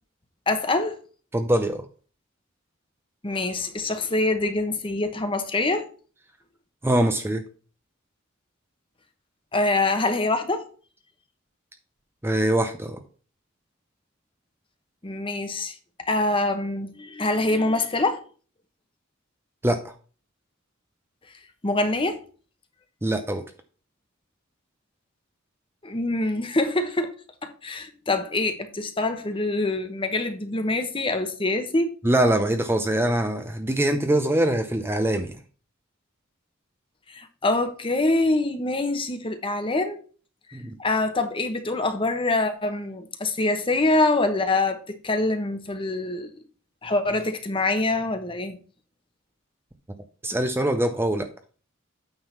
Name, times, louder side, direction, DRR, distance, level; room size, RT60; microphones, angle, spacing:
voice 1, 0.5-1.0 3.2-5.9 9.5-10.6 15.0-15.7 16.0-18.2 21.6-22.2 25.8-27.1 27.4-31.9 37.1-40.0 40.8-46.3 46.8-48.6, left 2 dB, 25° left, 1.0 m, -25 dB
voice 2, 1.3-1.8 6.8-7.4 12.2-13.0 19.6-19.9 23.0-23.4 32.0-35.4 40.5-40.7 50.2-51.3, right 1 dB, 10° right, 0.6 m, -23 dB
8.9 x 3.7 x 5.7 m
head